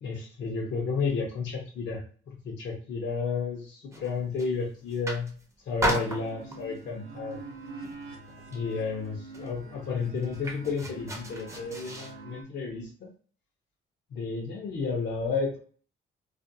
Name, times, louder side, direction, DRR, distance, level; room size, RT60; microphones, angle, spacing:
voice 1, 0.0-2.0 2.4-5.3 5.7-7.4 8.5-13.1 14.1-15.6, left 4 dB, 65° left, -2 dB, 0.7 m, -32 dB
sound 1, 3.9-4.6 4.9-5.4 5.8-6.8 7.3-7.6 7.8-8.7 9.0-9.1 9.3-12.2, right 1 dB, 15° right, 0.6 m, -34 dB
sound 2, 6.0-12.4, right 3 dB, 80° right, 0.7 m, -45 dB
2.5 x 2.1 x 2.6 m, 0.42 s
cardioid pair, 90°, 20 cm